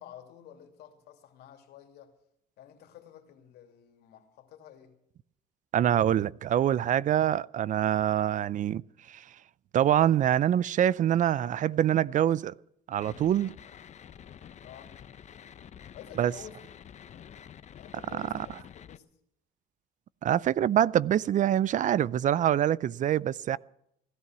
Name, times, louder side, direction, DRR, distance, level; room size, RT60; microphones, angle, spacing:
voice 1, 0.0-2.1 2.6-4.9 14.6-15.0 15.9-16.6 17.7-19.1, left 10 dB, 75° left, 2.9 m, -50 dB
voice 2, 5.7-8.8 9.1-9.2 9.7-12.5 12.9-13.5 16.2-16.3 18.1-18.5 20.2-23.6, right 11 dB, 50° right, 0.5 m, -25 dB
sound 1, 13.0-19.0, left 8 dB, 45° left, 0.8 m, -49 dB
16.5 x 12.5 x 6.1 m
cardioid pair, 110°, 17 cm